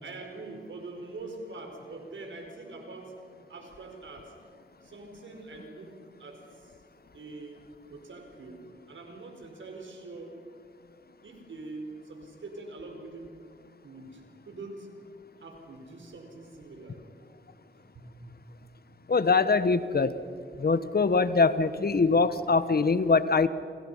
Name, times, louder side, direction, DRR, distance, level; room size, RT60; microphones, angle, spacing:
voice 1, 0.0-3.1 3.5-4.3 4.8-6.8 7.1-7.6 7.9-8.6 8.9-10.4 11.2-13.3 13.8-14.9 15.4-17.0 17.9-18.1 21.9-22.0, right 3 dB, 80° right, 3 dB, 4.9 m, -44 dB
voice 2, 19.1-20.1 20.6-23.5, left 4 dB, 55° left, 13 dB, 1.3 m, -23 dB
28.5 x 27.0 x 5.7 m, 2.4 s
cardioid pair, 50°, 20 cm